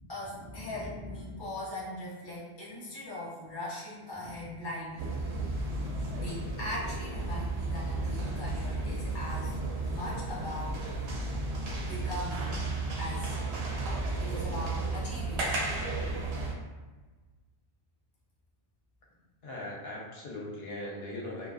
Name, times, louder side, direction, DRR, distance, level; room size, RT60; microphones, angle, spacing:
voice 1, 0.1-5.1 6.2-9.6 9.8-10.8 11.8-12.6 13.0-13.4 14.2-15.5, left 1 dB, 25° left, -6 dB, 0.6 m, -40 dB
sound 1, 5.0-16.5, right 2 dB, 85° right, 0.8 m, -33 dB
voice 2, 19.4-21.5, left 1 dB, 75° left, -3 dB, 0.8 m, -39 dB
2.3 x 2.2 x 2.4 m, 1.3 s
omnidirectional pair, 1.1 m